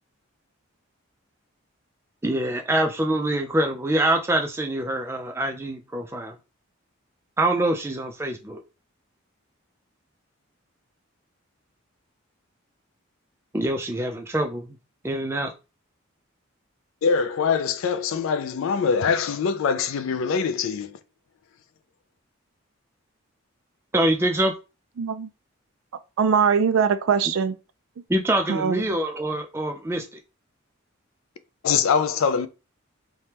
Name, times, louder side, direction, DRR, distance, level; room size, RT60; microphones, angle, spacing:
voice 1, 2.2-6.4 7.4-8.6 13.5-14.8 15.0-15.5 23.9-24.5 28.1-30.0, right 1 dB, 10° right, 0.4 m, -25 dB
voice 2, 17.0-21.0 31.6-32.5, left 6 dB, 75° left, 0.3 m, -23 dB
voice 3, 25.0-25.3 26.2-27.6 28.5-28.8, right 6 dB, 75° right, 0.4 m, -21 dB
3.3 x 2.2 x 2.8 m
head